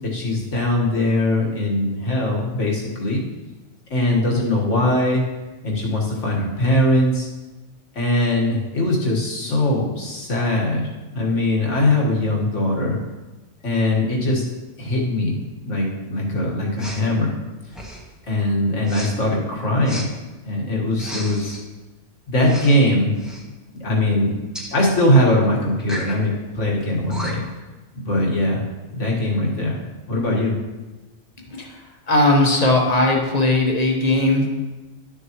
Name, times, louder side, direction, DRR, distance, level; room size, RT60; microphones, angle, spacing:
voice 1, 0.0-3.2 3.9-5.2 5.6-7.3 8.0-13.0 13.6-14.4 14.8-15.4 15.6-17.4 18.3-20.1 20.4-21.6 22.3-23.1 23.8-24.4 24.7-27.4 27.9-28.6 28.9-29.8 30.1-30.6, left 1 dB, 80° left, -3 dB, 2.0 m, -21 dB
Respiratory sounds, 16.8-17.0 17.7-18.1 18.8-19.1 19.8-20.1 20.9-21.6 22.4-22.8 23.1-23.4 24.5-24.7 25.8-26.1 26.8-26.9 27.1-27.6, equal, ahead, 1.1 m, -34 dB
voice 2, 32.1-34.5, left 2 dB, 35° left, 1 dB, 1.2 m, -18 dB
12.0 x 6.7 x 3.1 m, 1.2 s
omnidirectional pair, 1.2 m